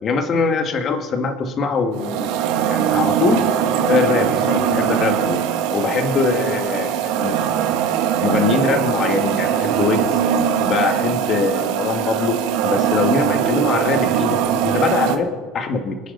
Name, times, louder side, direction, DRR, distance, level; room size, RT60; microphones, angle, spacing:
voice 1, 0.0-3.4 3.8-5.4 5.7-7.6 8.2-10.2 10.6-16.0, left 4 dB, 35° left, 6 dB, 1.7 m, -22 dB
sound 1, 1.9-15.2, right 9 dB, 75° right, 1.4 m, -21 dB
27.0 x 9.6 x 4.0 m, 1.5 s
cardioid pair, 135°, 0 cm